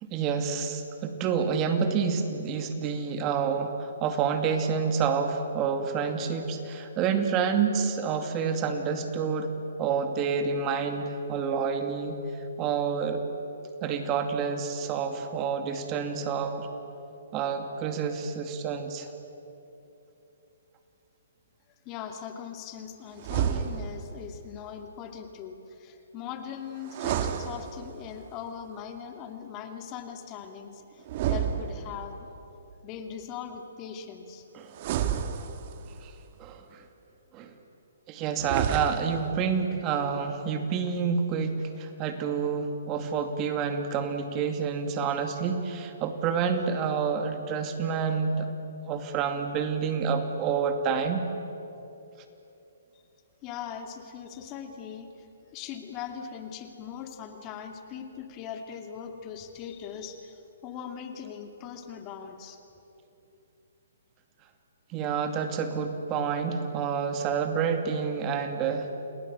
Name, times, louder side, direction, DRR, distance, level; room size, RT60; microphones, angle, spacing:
voice 1, 0.0-12.2 12.6-13.2 13.8-16.7 17.3-19.1 34.5-34.7 36.0-36.1 36.4-36.8 37.3-37.5 38.1-48.5 48.9-51.3 64.9-68.9, right 6 dB, 25° right, 6 dB, 2.5 m, -28 dB
voice 2, 21.8-32.3 32.8-34.4 53.4-55.1 55.5-62.6, left 8 dB, 30° left, 5 dB, 2.4 m, -40 dB
sound 1, 23.2-24.1 26.8-28.2 31.1-32.2 34.7-36.0 38.3-39.3, right 9 dB, 40° right, 1.7 m, -30 dB
29.0 x 19.5 x 8.7 m, 3.0 s
hypercardioid pair, 145°, 0 cm